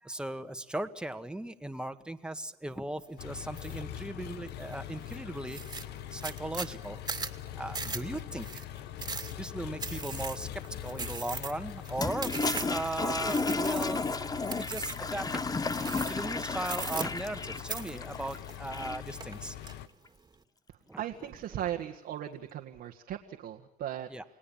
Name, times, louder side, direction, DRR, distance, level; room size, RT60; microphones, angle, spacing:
voice 1, 0.0-5.6 6.1-7.0 7.5-8.6 9.4-15.4 16.0-19.6 20.9-21.0 24.1-24.2, right 1 dB, 5° right, 7 dB, 1.8 m, -38 dB
Engine, 3.2-19.9, left 11 dB, 80° left, 1.4 m, -43 dB
sound 1, 3.6-3.8 4.3-4.7 5.1-5.2 5.5-12.9 13.3-14.1 14.5-15.1 15.7-16.3 16.6-17.4 17.7-18.9 19.2-19.7, right 4 dB, 25° right, 2.4 m, -38 dB
Toilet flush, 11.9-19.2, left 3 dB, 20° left, 1.1 m, -33 dB
voice 2, 20.7-24.1, right 11 dB, 75° right, 1 dB, 1.9 m, -38 dB
29.5 x 19.0 x 7.4 m, 0.87 s
cardioid pair, 110°, 17 cm